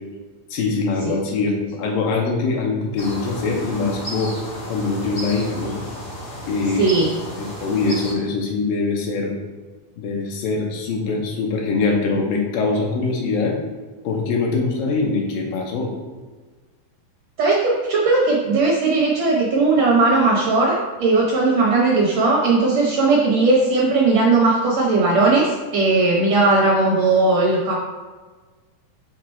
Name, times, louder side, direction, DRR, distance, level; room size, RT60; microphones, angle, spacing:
voice 1, 0.5-4.3 4.7-5.8 6.5-7.0 7.4-9.3 10.0-13.6 14.0-15.9, left 4 dB, 80° left, 0 dB, 2.6 m, -23 dB
sound 1, 3.0-8.1, equal, 55° left, 0.9 m, -33 dB
voice 2, 6.8-7.1 17.4-27.7, right 3 dB, 70° right, -3 dB, 1.7 m, -18 dB
6.5 x 3.7 x 4.4 m, 1.3 s
omnidirectional pair, 3.9 m